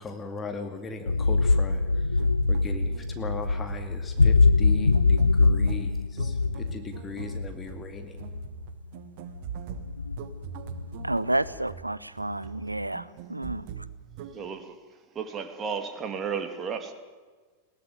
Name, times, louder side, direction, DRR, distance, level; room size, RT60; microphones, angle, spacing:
voice 1, 0.0-1.8 2.5-6.4 6.7-8.2, left 3 dB, 20° left, 2.3 m, -38 dB
sound 1, 1.1-8.6 9.4-9.5 9.8-11.5, left 3 dB, 80° left, 0.6 m, -23 dB
sound 2, 2.1-14.4, right 7 dB, 45° right, 1.5 m, -42 dB
voice 2, 11.0-13.6, right 1 dB, 85° right, 0.7 m, -30 dB
voice 3, 14.3-14.7 15.1-16.9, right 6 dB, 25° right, 2.7 m, -33 dB
21.0 x 17.5 x 9.4 m
figure-of-eight pair, 90°, 0 cm